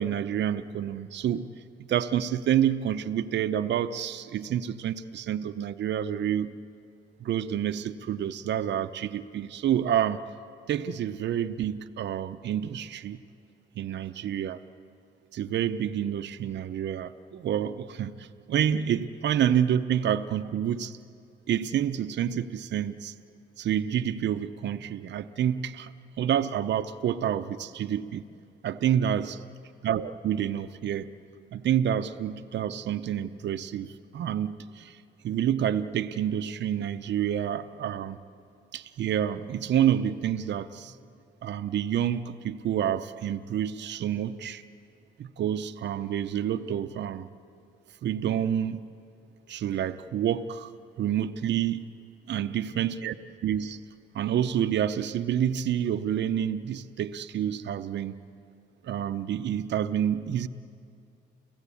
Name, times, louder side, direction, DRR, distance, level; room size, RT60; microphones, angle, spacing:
voice 1, 0.0-1.5 1.9-6.6 7.2-10.2 10.7-13.2 13.8-14.6 15.3-21.0 21.5-23.1 23.6-25.9 26.2-28.2 28.6-29.4 29.8-31.1 31.5-35.0 35.2-38.2 38.7-40.9 41.4-44.6 45.2-47.3 48.0-48.9 49.5-50.7 51.0-51.8 52.3-53.1 53.4-53.8 54.1-58.2 58.8-60.5, right 10 dB, 60° right, 9 dB, 0.7 m, -28 dB
29.5 x 16.0 x 8.5 m, 2.5 s
cardioid pair, 90°, 20 cm